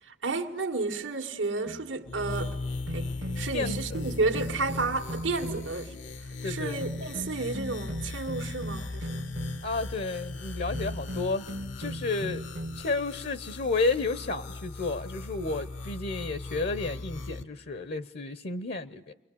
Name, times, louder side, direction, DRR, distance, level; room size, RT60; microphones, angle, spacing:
voice 1, 0.0-2.6 2.9-3.1 3.4-5.9 6.2-9.3, right 3 dB, 85° right, 1.8 m, -32 dB
sound 1, 1.7-1.9 2.9-5.9 6.8-9.8 10.7-12.9, right 1 dB, 70° right, 1.2 m, -38 dB
sound 2, 2.1-17.4, left 3 dB, 80° left, 1.3 m, -38 dB
voice 2, 3.5-4.0 6.4-6.8 9.6-11.5 11.8-12.5 12.8-19.1, left 3 dB, 60° left, 0.9 m, -31 dB
29.5 x 22.0 x 8.5 m
head